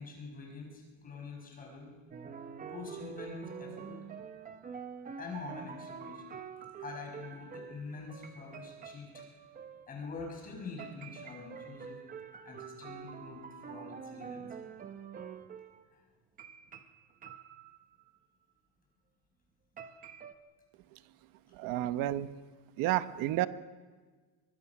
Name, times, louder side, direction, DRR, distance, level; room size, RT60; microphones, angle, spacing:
voice 1, 0.0-1.9 2.7-4.0 5.2-6.4 6.8-9.2 9.9-12.0 12.4-14.5 15.9-16.0, left 4 dB, 20° left, 0 dB, 5.7 m, -45 dB
sound 1, 2.1-9.9 10.8-15.8 16.4-18.1 19.8-20.3, right 6 dB, 20° right, 0.9 m, -46 dB
voice 2, 21.5-22.3 22.8-23.5, right 14 dB, 55° right, 12 dB, 1.0 m, -30 dB
24.0 x 22.5 x 6.0 m, 1.4 s
cardioid pair, 175°, 41 cm